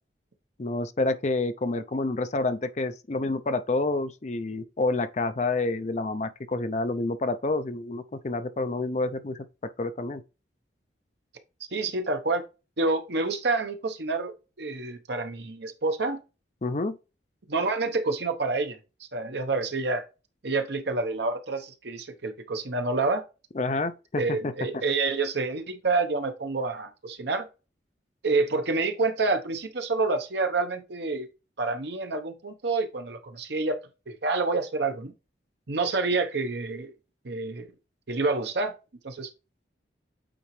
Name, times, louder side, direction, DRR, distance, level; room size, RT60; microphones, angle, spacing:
voice 1, 0.6-9.5 9.8-10.2 16.6-17.0 23.6-24.8, left 2 dB, 35° left, 0.5 m, -28 dB
voice 2, 11.7-12.4 12.8-16.2 17.5-20.0 20.4-23.2 24.2-27.5 28.2-31.3 31.6-33.8 34.1-35.1 35.7-36.9 37.2-37.7 38.1-38.7 39.0-39.3, right 3 dB, 65° right, 0.9 m, -28 dB
8.6 x 3.8 x 3.1 m
head